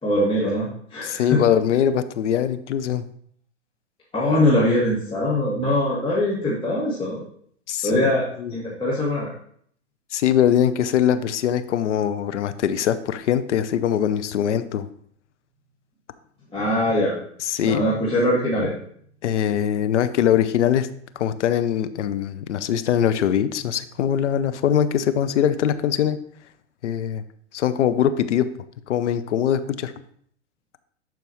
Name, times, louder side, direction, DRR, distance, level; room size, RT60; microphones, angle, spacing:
voice 1, 0.0-1.4 4.1-7.2 7.8-9.3 16.5-17.1 17.6-18.7, left 1 dB, 15° left, -7 dB, 1.8 m, -22 dB
voice 2, 1.0-3.0 7.7-8.1 8.4-8.5 10.1-14.9 17.4-17.8 19.2-20.9 21.2-26.2 26.8-27.2 27.5-28.5 28.9-29.9, left 9 dB, 70° left, 12 dB, 0.7 m, -22 dB
12.0 x 4.6 x 3.0 m, 0.62 s
hypercardioid pair, 110°, 36 cm